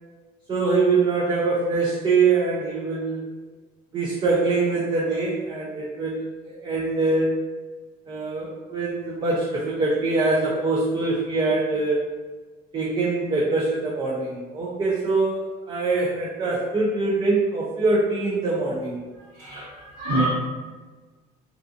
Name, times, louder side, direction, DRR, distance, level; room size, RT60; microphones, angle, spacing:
voice 1, 0.5-3.2 3.9-7.4 8.1-12.0 12.7-19.0, right 3 dB, 30° right, -5 dB, 0.4 m, -23 dB
voice 2, 19.4-20.3, right 1 dB, 85° right, -10 dB, 1.0 m, -26 dB
2.5 x 2.4 x 2.4 m, 1.3 s
cardioid pair, 110°, 17 cm